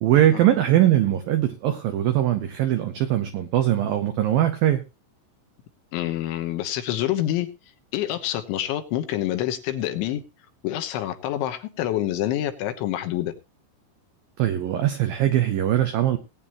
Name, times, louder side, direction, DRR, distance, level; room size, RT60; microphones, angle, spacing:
voice 1, 0.0-4.8 14.4-16.2, right 12 dB, 90° right, 8 dB, 2.0 m, -21 dB
voice 2, 5.9-7.5 7.9-10.2 10.6-13.3, left 13 dB, 75° left, 7 dB, 3.3 m, -27 dB
19.5 x 9.1 x 3.0 m, 0.26 s
omnidirectional pair, 5.6 m